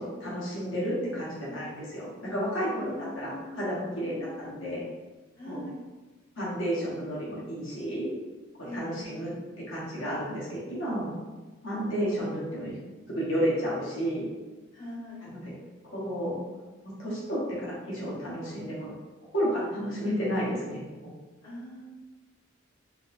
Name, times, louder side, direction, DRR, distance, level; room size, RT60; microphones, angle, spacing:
voice 1, 0.0-4.8 5.5-5.6 6.4-8.1 8.6-9.3 9.7-11.1 11.6-12.8 13.1-14.3 15.2-15.5 15.8-16.4 16.8-18.9 19.3-21.1, equal, 65° left, -6 dB, 1.2 m, -32 dB
voice 2, 2.7-3.6 4.0-4.6 5.4-5.8 8.6-9.2 14.7-15.3 21.4-21.8, left 1 dB, 40° left, -9 dB, 1.2 m, -42 dB
3.8 x 2.6 x 2.6 m, 1.2 s
head